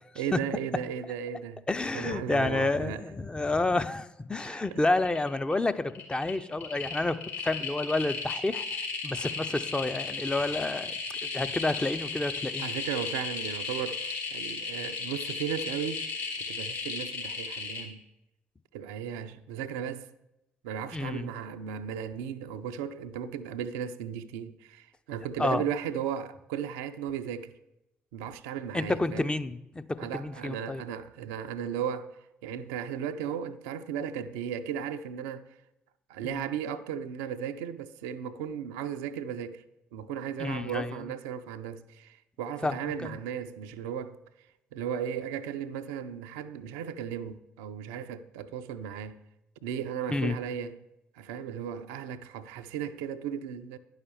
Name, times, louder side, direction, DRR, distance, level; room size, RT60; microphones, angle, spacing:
voice 1, 0.2-1.6 1.9-3.0 4.5-4.8 12.6-16.1 16.4-18.0 18.7-20.1 20.6-27.5 28.1-29.3 30.0-35.5 36.1-39.6 39.9-44.2 44.7-49.2 49.6-50.8 51.1-53.8, right 8 dB, 65° right, 0.4 m, -36 dB
voice 2, 1.7-8.8 9.0-10.9 11.3-12.7 20.9-21.3 25.4-25.6 28.7-30.8 36.2-36.4 40.4-40.9 42.6-43.2 50.1-50.4, left 2 dB, 15° left, 0.5 m, -30 dB
sound 1, 4.4-4.7 4.9-5.5 5.9-17.8, left 4 dB, 60° left, 3.1 m, -35 dB
9.9 x 5.6 x 6.8 m
figure-of-eight pair, 45°, 6 cm